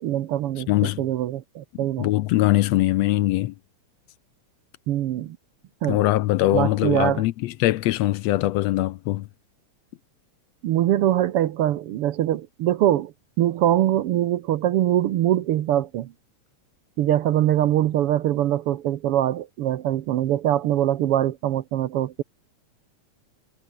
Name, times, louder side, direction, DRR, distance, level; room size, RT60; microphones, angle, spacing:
voice 1, 0.0-2.1 4.9-5.4 5.8-6.0 6.5-7.2 10.6-16.1 17.0-22.2, right 12 dB, 70° right, 1.4 m, -23 dB
voice 2, 0.7-1.0 1.7-3.5 5.8-9.3, left 16 dB, 75° left, 1.6 m, -22 dB
omnidirectional pair, 3.5 m